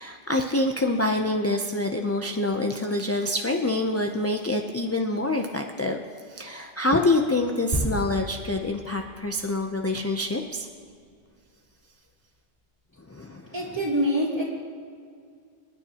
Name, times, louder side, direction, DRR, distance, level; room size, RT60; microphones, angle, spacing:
voice 1, 0.0-10.7 13.1-13.5, left 2 dB, 20° left, 3 dB, 0.4 m, -26 dB
sound 1, 7.7-11.4 11.6-11.8, equal, 55° right, 2.8 m, -34 dB
voice 2, 13.5-14.4, equal, 20° right, -7 dB, 3.5 m, -25 dB
27.0 x 9.8 x 2.9 m, 2.2 s
omnidirectional pair, 1.1 m